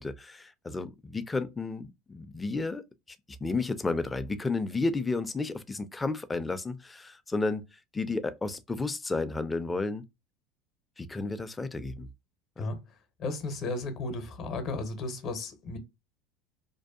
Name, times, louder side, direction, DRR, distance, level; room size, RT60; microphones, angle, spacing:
voice 1, 0.0-2.8 3.4-7.6 7.9-10.0 11.0-12.1 12.6-12.7, left 3 dB, 15° left, 0.4 m, -32 dB
voice 2, 13.2-15.8, left 2 dB, 50° left, 0.7 m, -34 dB
2.6 x 2.2 x 2.3 m
hypercardioid pair, 85°, 0 cm